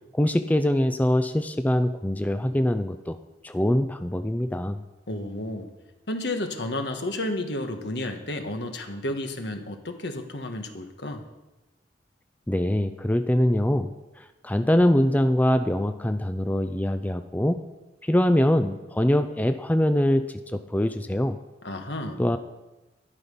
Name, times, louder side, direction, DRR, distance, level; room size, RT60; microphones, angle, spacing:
voice 1, 0.1-3.2 3.4-4.8 12.5-13.9 14.2-17.6 18.0-20.2 20.5-21.4 22.2-22.4, left 1 dB, 10° left, 9 dB, 0.4 m, -23 dB
voice 2, 5.1-5.7 6.1-11.2 21.6-22.2, left 1 dB, 75° left, 5 dB, 1.5 m, -32 dB
12.0 x 11.5 x 5.4 m, 1.1 s
head